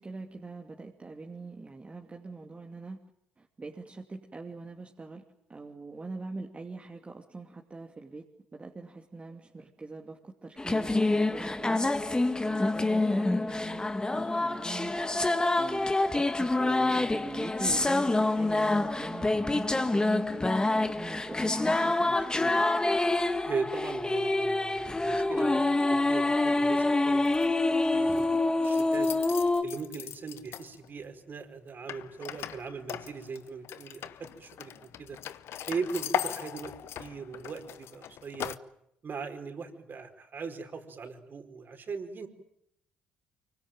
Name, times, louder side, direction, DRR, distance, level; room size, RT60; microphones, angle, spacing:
voice 1, 0.0-3.0 3.4-5.2 5.5-8.2 8.5-22.6, right 3 dB, 30° right, 2 dB, 2.7 m, -43 dB
sound 1, 10.6-29.6, left 2 dB, 15° left, 1.9 m, -27 dB
voice 2, 23.4-25.6 25.9-27.2 27.7-28.3 28.6-29.1 29.6-35.2 35.7-38.6 39.0-42.3, right 5 dB, 45° right, 5 dB, 4.9 m, -39 dB
sound 2, 27.2-27.5 27.8-28.2 28.6-31.0 31.9-38.6, left 10 dB, 65° left, 1.0 m, -39 dB
24.5 x 24.0 x 9.1 m, 0.76 s
hypercardioid pair, 55°, 5 cm